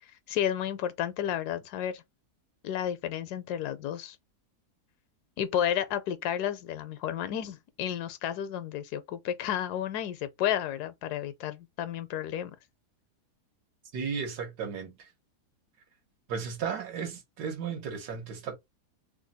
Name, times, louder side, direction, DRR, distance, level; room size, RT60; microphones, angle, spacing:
voice 1, 0.3-2.0 2.6-4.2 5.4-12.6, left 10 dB, 85° left, 1.2 m, -32 dB
voice 2, 13.9-15.1 16.3-18.5, right 6 dB, 85° right, 1.6 m, -34 dB
3.3 x 2.1 x 4.0 m
omnidirectional pair, 1.7 m